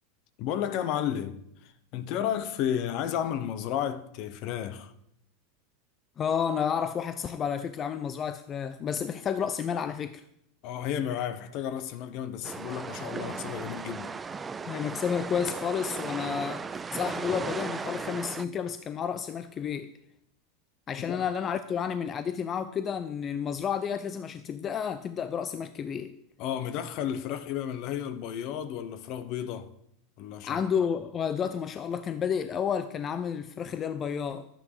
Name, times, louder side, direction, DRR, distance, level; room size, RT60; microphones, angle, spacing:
voice 1, 0.4-4.9 10.6-14.1 21.1-21.2 26.4-29.7 30.2-30.6, left 9 dB, 55° left, 1.0 m, -32 dB
voice 2, 6.2-10.2 14.7-19.9 20.9-26.2 30.4-34.5, left 7 dB, 30° left, 0.6 m, -31 dB
sound 1, 12.4-18.4, right 5 dB, 20° right, 0.5 m, -36 dB
11.5 x 9.0 x 4.9 m
hypercardioid pair, 110°, 0 cm